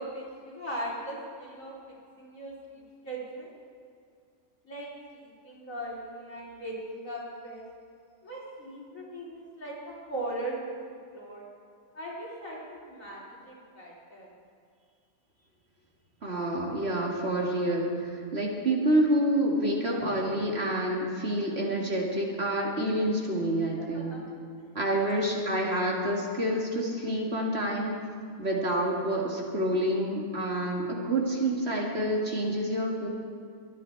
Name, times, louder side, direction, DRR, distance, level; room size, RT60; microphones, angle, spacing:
voice 1, 0.0-3.5 4.6-7.6 8.2-11.5 11.9-14.3 19.8-20.0 23.8-24.2 24.9-25.3, right 1 dB, 60° left, -5 dB, 4.1 m, -39 dB
voice 2, 16.2-24.1 24.7-28.0 28.4-33.1, right 1 dB, 45° right, -2 dB, 2.2 m, -28 dB
23.0 x 9.9 x 4.6 m, 2.4 s
omnidirectional pair, 1.5 m